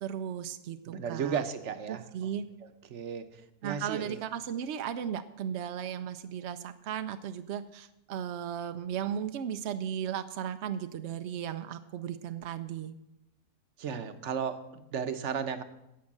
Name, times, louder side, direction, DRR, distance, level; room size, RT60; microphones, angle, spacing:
voice 1, 0.0-1.4 1.9-2.5 3.6-13.0, right 9 dB, 70° right, 10 dB, 0.6 m, -36 dB
voice 2, 0.9-2.0 2.9-3.3 3.6-4.2 13.8-15.6, right 7 dB, 55° right, 10 dB, 1.0 m, -34 dB
11.5 x 7.6 x 7.3 m, 0.88 s
omnidirectional pair, 1.7 m